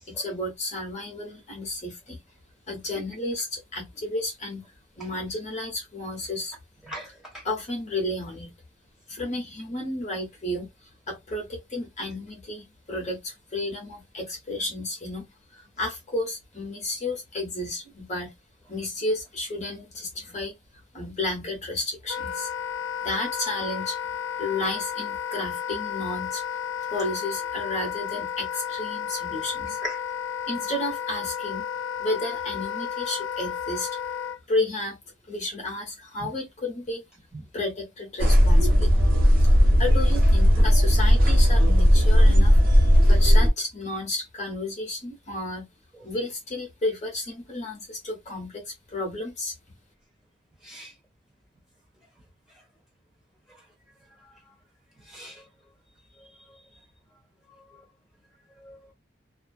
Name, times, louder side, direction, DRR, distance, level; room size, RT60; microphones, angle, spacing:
voice 1, 0.1-2.2 2.7-4.6 5.0-6.5 7.4-8.5 9.1-10.7 11.1-18.3 18.7-20.5 20.9-22.5 23.0-24.1 24.4-26.4 26.9-29.8 30.5-31.6 32.0-33.9 34.5-35.0 35.3-37.0 37.5-38.9 39.8-42.6 43.1-45.6 46.0-49.6, left 2 dB, 40° left, 1.0 m, -32 dB
voice 2, 6.9-7.4 29.8-30.0 37.3-37.4 40.5-40.7 50.6-50.9 54.2-54.3 55.1-55.4 56.2-56.3 58.6-58.9, equal, 5° right, 1.3 m, -39 dB
Wind instrument woodwind instrument, 22.1-34.4, left 9 dB, 85° left, 0.3 m, -32 dB
sound 1, 38.2-43.5, equal, 50° right, 1.0 m, -17 dB
2.5 x 2.2 x 2.3 m
head